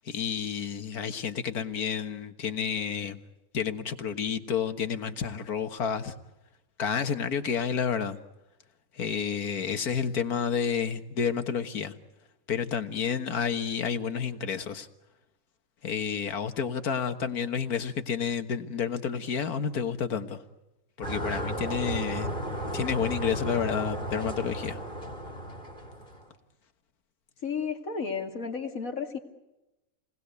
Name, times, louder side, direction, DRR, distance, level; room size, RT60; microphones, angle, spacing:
voice 1, 0.1-3.2 3.5-6.1 6.8-8.2 8.9-12.0 12.5-14.9 15.8-20.4 21.0-22.3 22.7-24.8, left 7 dB, 85° left, 9 dB, 2.0 m, -30 dB
sound 1, 21.0-26.3, equal, 35° left, 4.0 m, -34 dB
voice 2, 27.4-29.2, left 5 dB, 65° left, 4 dB, 2.9 m, -32 dB
29.0 x 20.0 x 8.2 m, 0.99 s
omnidirectional pair, 1.6 m